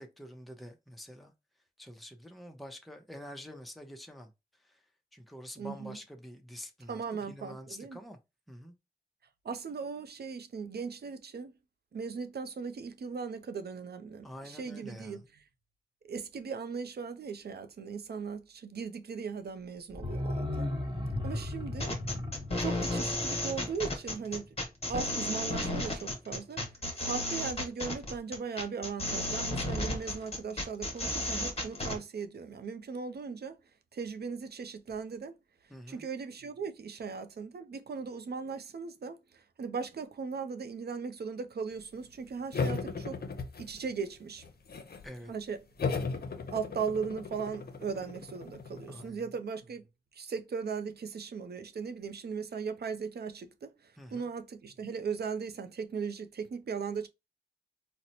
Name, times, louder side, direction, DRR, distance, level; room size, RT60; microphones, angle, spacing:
voice 1, 0.0-1.3 1.8-4.3 4.6-4.8 5.1-7.0 7.3-8.2 8.5-8.7 14.2-15.2 35.7-36.1 45.0-45.3 48.9-49.2 54.0-54.3, equal, ahead, 0.5 m, -47 dB
voice 2, 5.6-6.0 6.9-8.0 9.4-11.5 11.9-15.2 16.1-20.7 21.2-21.9 22.6-24.5 24.9-26.6 27.0-33.6 33.9-35.3 35.9-43.2 43.6-44.4 45.3-45.6 46.5-49.8 50.1-57.1, right 5 dB, 75° right, 0.5 m, -38 dB
sound 1, 19.9-24.7 25.0-25.1, left 1 dB, 30° right, 1.0 m, -36 dB
sound 2, 21.8-32.0, left 1 dB, 35° left, 1.1 m, -33 dB
sound 3, 42.5-44.0 44.4-45.1 45.8-49.1, left 4 dB, 70° left, 0.6 m, -36 dB
4.0 x 2.1 x 2.8 m
wide cardioid pair, 100°, 17 cm